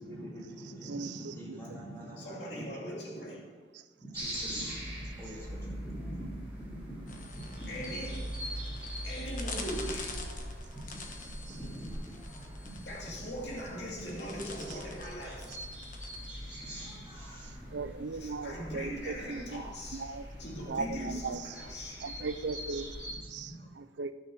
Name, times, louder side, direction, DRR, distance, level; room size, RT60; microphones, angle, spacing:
voice 1, 0.0-2.7 4.0-7.7 10.9-11.1 11.3-12.2 12.6-12.7 16.3-17.7 20.4-20.5 23.2-23.6, right 1 dB, 15° left, -6 dB, 2.4 m, -45 dB
voice 2, 0.6-1.8 3.7-3.8 14.7-14.8 17.7-20.3 20.7-21.6 22.0-22.9 23.3-24.1, right 4 dB, 80° right, 12 dB, 0.5 m, -38 dB
voice 3, 2.2-3.6 7.7-8.4 9.0-10.4 12.8-15.5 18.1-22.1, equal, 75° left, -3 dB, 2.6 m, -41 dB
sound 1, 4.1-23.1, equal, 10° right, 2.5 m, -42 dB
sound 2, 7.1-17.0, left 4 dB, 50° left, 1.1 m, -47 dB
12.0 x 6.3 x 4.7 m, 1.5 s
head